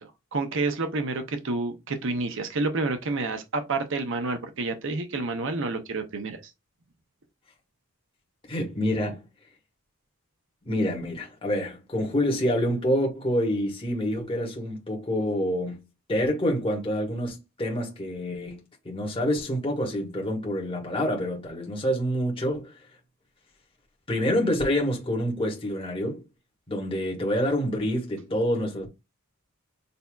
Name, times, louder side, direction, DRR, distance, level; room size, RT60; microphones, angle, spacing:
voice 1, 0.0-6.4, right 3 dB, 55° right, 0.7 m, -29 dB
voice 2, 8.5-9.2 10.6-15.8 16.1-22.8 24.1-26.2 26.7-28.9, equal, 25° left, 1.4 m, -27 dB
6.7 x 2.7 x 2.3 m
head